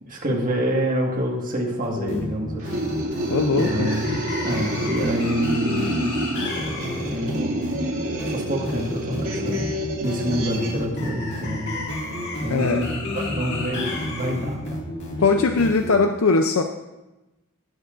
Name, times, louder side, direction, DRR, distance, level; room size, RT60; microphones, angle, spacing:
voice 1, 0.1-2.9 3.5-6.1 6.9-7.6 8.0-9.7 10.0-11.8 12.4-14.8, equal, 40° right, 0 dB, 1.7 m, -27 dB
sound 1, 1.8-15.9, left 1 dB, 55° left, 2.1 m, -30 dB
sound 2, 2.6-10.8, right 1 dB, 90° right, 2.2 m, -29 dB
voice 2, 3.3-3.9 12.5-12.8 15.2-16.6, left 4 dB, 70° left, 5 dB, 0.5 m, -20 dB
19.0 x 6.9 x 2.5 m, 1.0 s
head